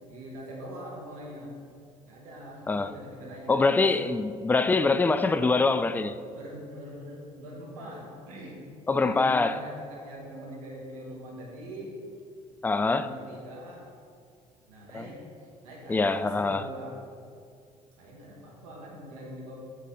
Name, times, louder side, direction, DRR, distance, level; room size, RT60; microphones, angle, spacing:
voice 1, 0.1-1.6 2.1-3.9 6.3-8.6 9.0-12.0 12.8-13.9 14.7-15.2 15.6-17.0 18.0-19.5, equal, 80° right, 1.4 m, -42 dB
voice 2, 3.5-6.2 8.9-9.6 12.6-13.1 14.9-15.1 15.9-16.7, left 3 dB, 10° left, 0.3 m, -24 dB
7.5 x 4.1 x 5.0 m
hypercardioid pair, 60°, 18 cm